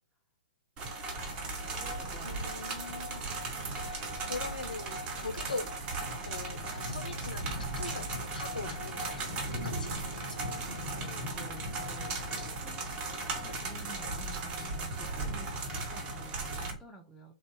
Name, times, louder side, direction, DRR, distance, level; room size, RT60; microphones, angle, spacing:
sound 1, 0.8-16.7, right 3 dB, 25° right, 0.7 m, -38 dB
sound 2, 1.1-16.8, right 1 dB, 60° right, 0.9 m, -41 dB
voice 1, 1.6-2.6 10.4-17.3, right 3 dB, 5° left, 0.4 m, -52 dB
voice 2, 2.2-5.7 6.2-9.2 9.5-10.5, left 3 dB, 80° left, 0.4 m, -42 dB
sound 3, 6.7-10.9 11.4-11.5, equal, 85° right, 0.6 m, -47 dB
3.0 x 2.1 x 2.9 m
figure-of-eight pair, 115°, 4 cm